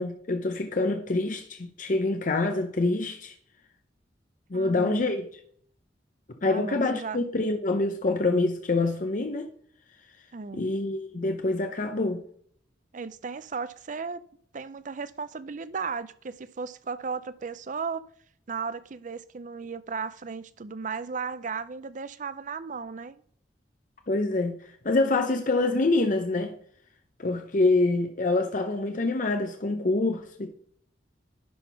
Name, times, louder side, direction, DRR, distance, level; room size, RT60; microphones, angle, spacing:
voice 1, 0.0-3.3 4.5-5.3 6.4-9.5 10.5-12.2 24.1-26.5 27.2-30.5, left 2 dB, 50° left, 0.7 m, -26 dB
voice 2, 4.5-5.1 6.4-7.2 10.3-10.7 12.9-14.2 14.5-18.1 18.5-23.2, right 5 dB, 45° right, 0.5 m, -35 dB
10.5 x 3.6 x 5.7 m
head